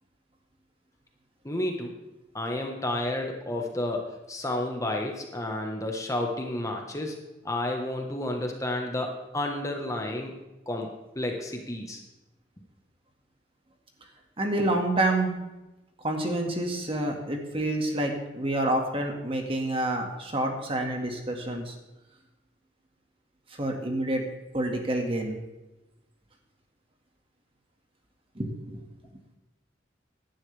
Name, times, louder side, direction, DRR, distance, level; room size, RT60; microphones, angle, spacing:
voice 1, 1.4-2.0 2.3-7.2 7.4-10.4 10.7-10.9 11.1-12.0, left 1 dB, 20° left, 2 dB, 1.2 m, -31 dB
voice 2, 14.4-15.3 16.0-21.7 23.5-24.2 24.5-25.4 28.4-28.8, right 1 dB, 30° right, 2 dB, 1.9 m, -28 dB
16.5 x 11.5 x 3.4 m, 1.0 s
head